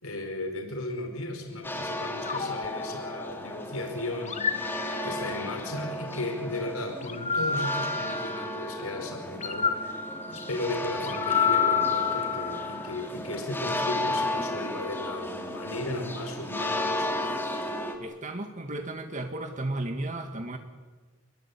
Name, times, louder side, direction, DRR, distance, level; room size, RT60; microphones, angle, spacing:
voice 1, 0.0-10.0 10.3-17.4, left 2 dB, 85° left, 5 dB, 5.1 m, -35 dB
sound 1, 1.6-17.9, left 1 dB, 10° left, 3.5 m, -34 dB
sound 2, 2.2-3.6 4.2-5.5 7.0-8.7 9.4-12.9, left 6 dB, 35° left, 1.7 m, -30 dB
voice 2, 18.0-20.6, right 2 dB, 35° right, 5 dB, 2.1 m, -34 dB
28.0 x 22.5 x 8.7 m, 1.4 s
head